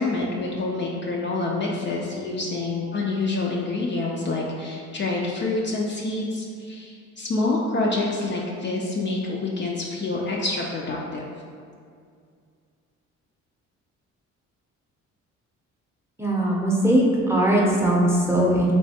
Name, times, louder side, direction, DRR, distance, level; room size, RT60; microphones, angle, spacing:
voice 1, 0.0-11.3, left 2 dB, 40° left, -2 dB, 0.4 m, -27 dB
voice 2, 16.2-18.7, right 1 dB, 10° right, -4 dB, 0.6 m, -20 dB
3.3 x 3.0 x 2.8 m, 2.2 s
cardioid pair, 90°, 30 cm